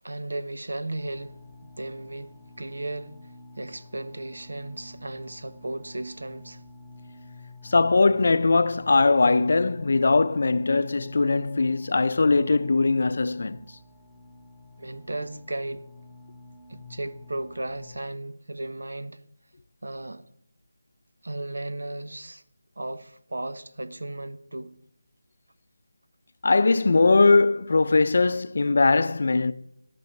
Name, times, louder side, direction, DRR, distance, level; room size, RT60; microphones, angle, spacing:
voice 1, 0.0-1.4 1.6-6.6 14.8-15.8 16.7-19.2 19.8-20.2 21.2-22.4 22.8-24.7, right 2 dB, 85° right, 1.1 m, -35 dB
sound 1, 1.0-18.0, left 2 dB, 10° right, 1.6 m, -49 dB
voice 2, 7.6-13.6 26.4-29.5, left 3 dB, 50° left, 0.6 m, -20 dB
12.0 x 6.2 x 8.0 m
figure-of-eight pair, 170°, 0 cm